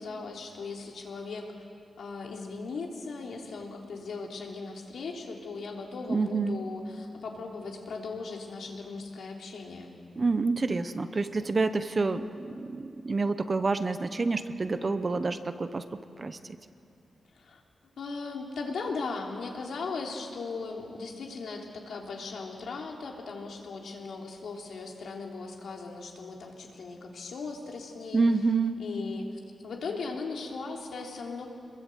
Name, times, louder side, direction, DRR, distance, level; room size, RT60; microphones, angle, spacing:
voice 1, 0.0-1.5 2.0-10.0 17.3-17.6 18.0-28.2 28.8-29.3 29.6-31.5, left 4 dB, 75° left, 0 dB, 3.3 m, -38 dB
voice 2, 6.1-6.6 10.2-16.4 28.1-28.8, right 3 dB, 30° right, 10 dB, 0.8 m, -28 dB
26.5 x 22.0 x 8.1 m, 2.5 s
wide cardioid pair, 180°, 0 cm